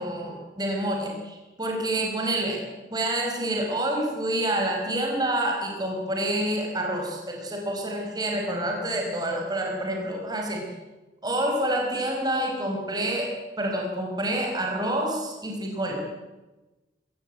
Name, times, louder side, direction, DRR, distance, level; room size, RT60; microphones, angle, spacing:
voice 1, 0.0-2.6 2.9-10.7 11.2-15.9, right 1 dB, 20° right, 0 dB, 4.8 m, -28 dB
25.5 x 15.0 x 9.2 m, 1.1 s
head